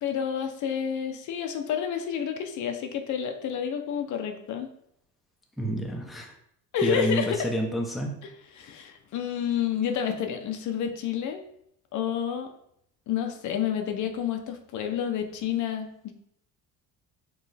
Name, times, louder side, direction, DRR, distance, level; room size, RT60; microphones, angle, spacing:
voice 1, 0.0-4.7 6.7-7.5 8.6-11.4 11.9-12.5 13.1-16.1, left 8 dB, 55° left, 6 dB, 0.6 m, -29 dB
voice 2, 5.6-6.3 6.8-8.1, equal, ahead, 1 dB, 0.5 m, -29 dB
4.5 x 3.1 x 3.3 m, 0.73 s
cardioid pair, 120°, 36 cm